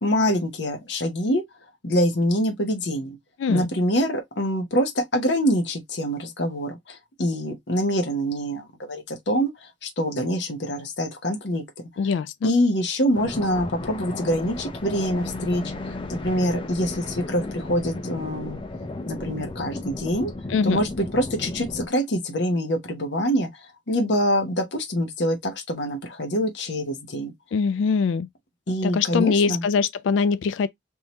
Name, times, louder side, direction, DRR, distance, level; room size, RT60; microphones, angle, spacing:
voice 1, 0.0-1.4 1.8-3.2 3.5-11.9 12.4-18.6 19.1-20.3 20.6-27.3 28.7-29.6, equal, 65° left, 1.0 m, -25 dB
voice 2, 12.0-12.5 20.5-20.8 27.5-28.3 28.8-30.7, left 5 dB, 90° left, 0.3 m, -22 dB
sound 1, 13.1-21.9, left 2 dB, 30° left, 0.6 m, -34 dB
3.6 x 2.8 x 2.9 m
head